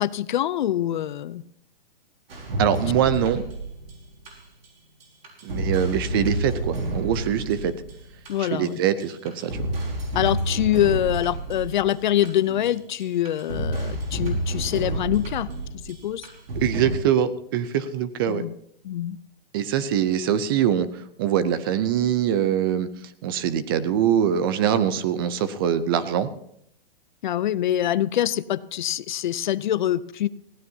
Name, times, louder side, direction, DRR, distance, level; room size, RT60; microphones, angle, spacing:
voice 1, 0.0-1.4 8.3-8.8 10.1-15.5 15.7-16.3 18.3-18.6 18.8-19.2 27.2-30.3, left 12 dB, 55° left, 17 dB, 0.6 m, -24 dB
sound 1, 2.3-4.7 5.0-8.7 9.0-16.9, right 1 dB, 85° right, 5.1 m, -30 dB
voice 2, 2.6-3.4 5.4-7.7 8.4-9.5 16.6-18.4 19.5-20.9 21.2-22.9 23.2-26.3, right 9 dB, 25° right, 14 dB, 0.5 m, -23 dB
20.0 x 16.0 x 2.8 m, 0.71 s
hypercardioid pair, 160°, 29 cm